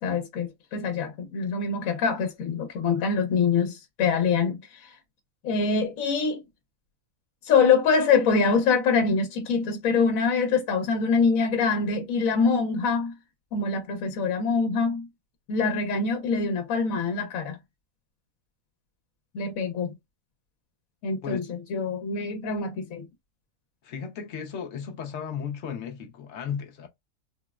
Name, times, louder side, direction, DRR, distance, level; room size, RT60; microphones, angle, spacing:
voice 1, 0.0-5.0 5.4-6.4 7.4-13.1 13.5-15.1 15.5-17.6 19.3-19.9 21.0-23.1, left 5 dB, 80° left, 1.1 m, -24 dB
voice 2, 23.8-26.9, left 7 dB, 60° left, 0.9 m, -35 dB
3.7 x 2.0 x 2.2 m
omnidirectional pair, 1.4 m